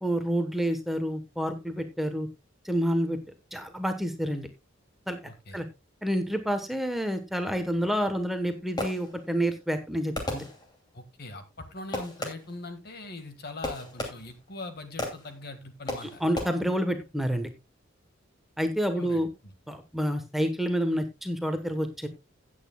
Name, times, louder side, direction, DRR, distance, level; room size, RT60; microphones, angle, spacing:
voice 1, 0.0-2.3 2.6-3.2 3.5-4.5 5.1-5.2 5.5-5.6 6.0-10.4 16.0-17.5 18.6-19.3 19.7-22.1, equal, ahead, 6 dB, 1.1 m, -28 dB
voice 2, 5.2-5.6 10.9-16.2 18.9-19.5, left 2 dB, 55° left, 8 dB, 1.8 m, -41 dB
Fireworks, 8.8-9.4 10.1-11.0 11.9-12.6 13.6-14.5 15.0-15.4 15.9-16.4, left 1 dB, 20° left, 2.6 m, -35 dB
16.5 x 8.5 x 2.3 m, 0.23 s
head